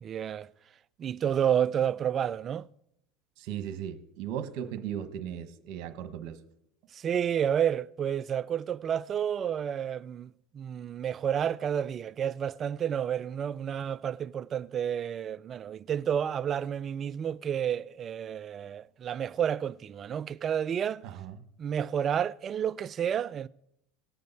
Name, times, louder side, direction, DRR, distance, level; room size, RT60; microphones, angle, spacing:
voice 1, 0.0-0.5 1.0-2.7 6.9-21.0 21.6-23.5, right 9 dB, 35° right, 0.4 m, -30 dB
voice 2, 3.4-6.4 21.0-21.4, right 9 dB, 60° right, 1.3 m, -37 dB
18.5 x 6.6 x 4.1 m
supercardioid pair, 115°, 0 cm